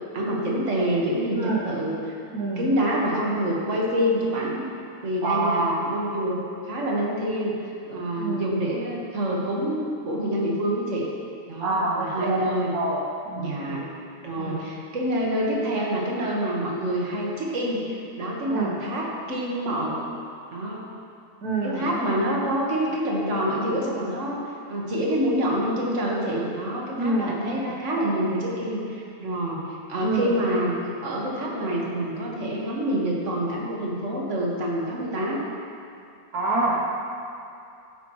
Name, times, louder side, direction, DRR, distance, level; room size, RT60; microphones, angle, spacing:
voice 1, 0.0-2.2 2.6-4.7 5.0-11.1 11.5-12.7 13.4-13.8 14.2-20.0 20.5-20.8 21.6-30.8 31.0-35.4 36.7-36.8, equal, 55° right, -3 dB, 1.8 m, -27 dB
voice 2, 1.3-1.6 2.3-2.7 5.2-5.8 8.2-8.4 11.6-12.4 12.7-13.8 14.4-14.6 18.5-18.8 21.4-21.9 27.0-27.6 30.0-30.3 36.3-36.8, right 2 dB, 75° right, -4 dB, 1.5 m, -26 dB
12.5 x 9.8 x 3.1 m, 2.5 s
omnidirectional pair, 1.6 m